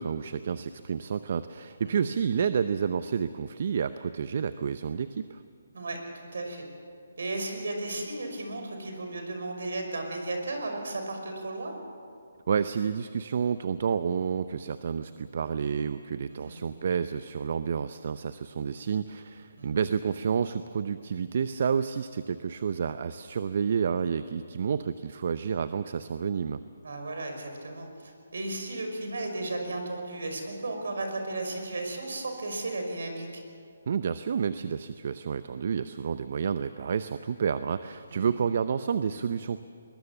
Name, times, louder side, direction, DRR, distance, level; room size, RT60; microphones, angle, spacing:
voice 1, 0.0-5.4 12.5-26.6 33.9-39.6, right 6 dB, 55° right, 12 dB, 0.7 m, -30 dB
voice 2, 5.7-6.6 7.2-11.7 16.3-16.5 19.6-19.7 26.8-33.4 38.1-38.3, right 2 dB, 75° right, 4 dB, 5.5 m, -35 dB
22.0 x 21.5 x 7.3 m, 2.2 s
hypercardioid pair, 155°, 0 cm